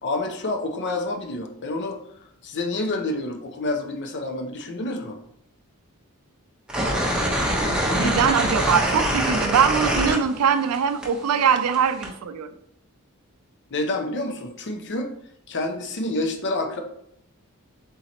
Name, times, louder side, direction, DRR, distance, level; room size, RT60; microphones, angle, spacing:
voice 1, 0.0-5.2 7.8-8.4 13.7-15.1 15.5-16.8, left 2 dB, 50° left, 5 dB, 0.6 m, -28 dB
sound 1, 6.7-10.7 11.0-12.1, equal, 5° right, 0.8 m, -24 dB
voice 2, 7.5-12.5, right 7 dB, 80° right, 11 dB, 0.4 m, -22 dB
3.8 x 2.8 x 4.1 m, 0.73 s
head